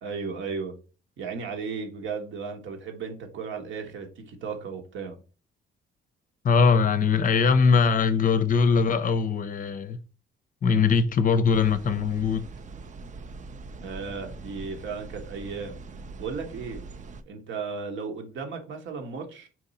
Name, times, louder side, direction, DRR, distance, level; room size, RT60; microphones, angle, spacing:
voice 1, 0.0-0.8 1.2-5.2 13.8-15.8 16.2-16.8 17.3-19.5, right 5 dB, 70° right, 1.3 m, -35 dB
voice 2, 6.4-10.0 10.6-12.5, left 5 dB, 45° left, 0.5 m, -21 dB
sound 1, 11.5-17.2, right 3 dB, 40° right, 0.5 m, -42 dB
4.5 x 2.7 x 4.0 m
cardioid pair, 90°, 20 cm